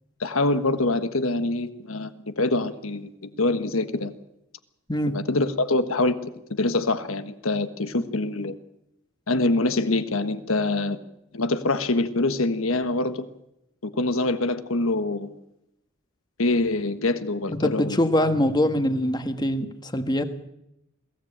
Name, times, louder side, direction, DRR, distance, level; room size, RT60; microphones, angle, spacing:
voice 1, 0.2-4.1 5.1-6.3 6.6-8.6 9.3-11.0 11.3-13.3 13.8-15.3 16.4-18.0, left 2 dB, 70° left, 11 dB, 1.4 m, -25 dB
voice 2, 17.5-20.2, left 1 dB, 20° left, 9 dB, 1.5 m, -23 dB
22.0 x 16.5 x 8.8 m, 0.85 s
head